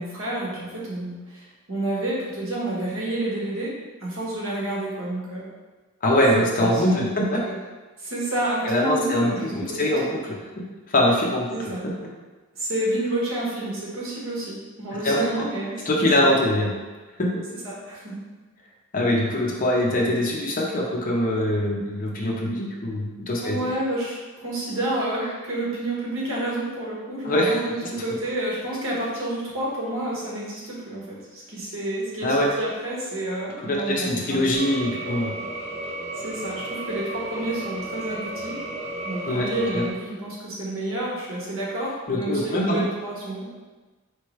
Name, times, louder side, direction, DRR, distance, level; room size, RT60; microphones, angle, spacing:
voice 1, 0.0-3.7 4.0-5.4 6.6-7.1 7.4-7.6 8.0-10.1 11.5-11.8 12.5-16.3 17.6-18.2 23.4-34.6 36.2-38.6 39.0-43.5, right 1 dB, 70° right, -5 dB, 1.3 m, -29 dB
voice 2, 6.0-7.4 8.6-10.3 10.9-11.7 15.0-15.2 15.9-16.7 17.2-17.3 18.9-23.6 27.2-27.6 32.2-32.5 33.6-35.3 39.3-39.8 42.1-42.8, left 1 dB, 40° left, -2 dB, 0.7 m, -23 dB
sound 1, 34.5-39.9, right 2 dB, 30° right, 0.6 m, -33 dB
4.6 x 3.1 x 3.1 m, 1.3 s
head